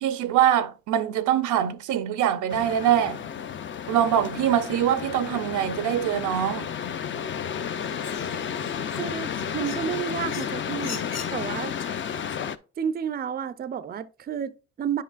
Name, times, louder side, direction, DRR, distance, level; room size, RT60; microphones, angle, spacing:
voice 1, 0.0-3.2 3.9-6.7, right 10 dB, 75° right, 0.6 m, -23 dB
sound 1, 2.5-12.6, left 7 dB, 40° left, 0.5 m, -32 dB
sound 2, 5.8-12.5, left 6 dB, 55° left, 1.2 m, -44 dB
voice 2, 9.0-11.8 12.8-15.0, right 8 dB, 30° right, 0.4 m, -31 dB
9.3 x 5.5 x 2.4 m
cardioid pair, 90°, 30 cm